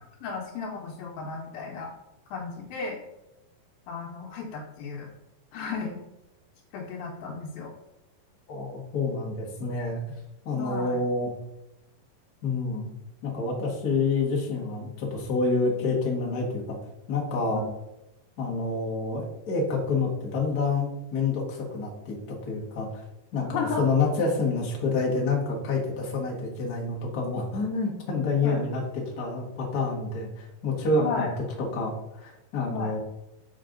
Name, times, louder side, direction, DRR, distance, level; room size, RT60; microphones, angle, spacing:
voice 1, 0.2-1.9 2.3-3.0 3.9-5.1 5.5-6.0 6.7-7.7 10.5-11.0 17.5-17.6 23.5-23.9 28.4-28.6 31.0-31.3 32.7-32.9, left 5 dB, 80° left, -3 dB, 2.6 m, -34 dB
voice 2, 8.5-10.0 10.4-11.3 12.4-12.9 13.2-16.8 17.1-17.6 18.4-23.0 23.3-31.3 31.6-33.0, left 3 dB, 55° left, -2 dB, 1.0 m, -28 dB
6.5 x 5.1 x 3.8 m, 0.92 s
omnidirectional pair, 4.1 m